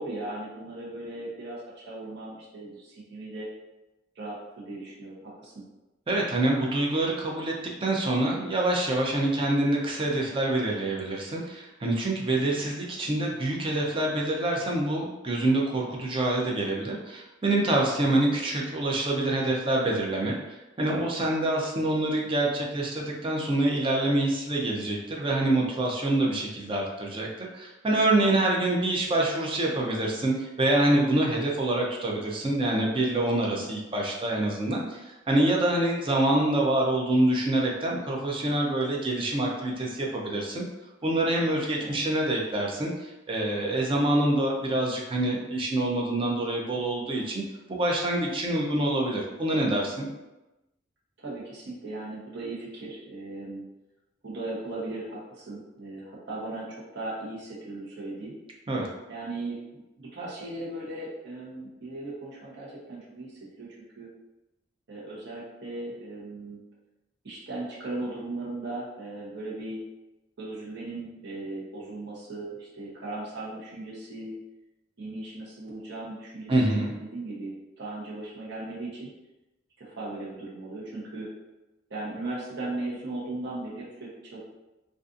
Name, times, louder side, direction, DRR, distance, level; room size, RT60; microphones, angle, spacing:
voice 1, 0.0-3.5 4.2-5.6 18.0-18.4 41.8-42.0 51.2-53.6 54.2-58.4 59.1-63.7 64.0-64.1 64.9-66.6 67.2-69.8 70.4-74.3 75.0-79.1 79.8-81.3 81.9-84.4, right 2 dB, 65° right, -6 dB, 0.8 m, -37 dB
voice 2, 6.1-7.5 7.8-40.6 41.0-42.9 43.3-47.4 47.7-50.1 58.7-58.9 76.5-76.9, right 1 dB, 30° right, -1 dB, 0.4 m, -26 dB
2.5 x 2.4 x 2.4 m, 1.0 s
head